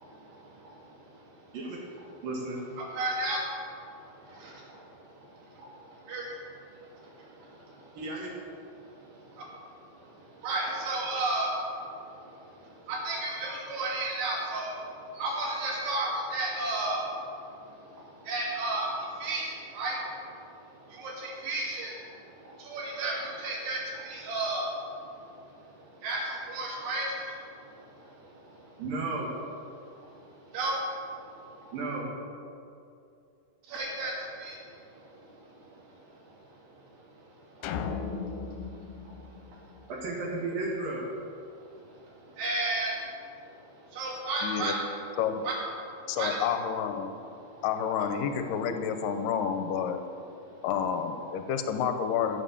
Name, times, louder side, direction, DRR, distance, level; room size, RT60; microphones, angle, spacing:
voice 1, 2.2-2.6 8.0-8.3 28.8-29.3 31.7-32.1 39.9-41.0, right 3 dB, 65° right, -3 dB, 3.3 m, -33 dB
voice 2, 2.8-3.4 4.4-4.5 6.1-6.3 10.4-11.5 12.9-14.7 15.2-17.0 18.3-18.9 19.2-20.0 21.0-22.0 22.6-24.7 26.0-27.2 30.5-30.8 33.7-34.1 34.4-34.6 42.4-43.0 43.9-44.8 45.4-45.5 46.1-46.4, right 2 dB, 80° right, -4 dB, 4.7 m, -32 dB
sound 1, 37.6-40.1, left 5 dB, 90° left, 2.8 m, -36 dB
voice 3, 44.4-44.7 45.2-45.4 46.1-47.1 47.6-50.0 50.6-52.4, left 7 dB, 75° left, 7 dB, 2.2 m, -29 dB
15.0 x 7.5 x 7.1 m, 2.6 s
omnidirectional pair, 4.6 m